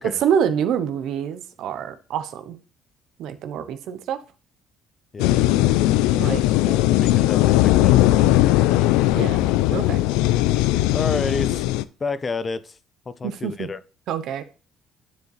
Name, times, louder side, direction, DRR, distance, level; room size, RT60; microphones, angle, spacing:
voice 1, 0.0-2.6 3.2-4.2 6.2-6.4 9.1-10.0 13.2-13.7 14.1-14.4, right 8 dB, 70° right, 11 dB, 0.8 m, -26 dB
sound 1, 5.2-11.8, left 15 dB, 90° left, 0.3 m, -18 dB
voice 2, 6.1-8.8 10.9-11.7 12.0-12.8 13.1-13.8, left 4 dB, 35° left, 15 dB, 0.5 m, -31 dB
9.3 x 4.6 x 3.2 m, 0.36 s
supercardioid pair, 80°, 0 cm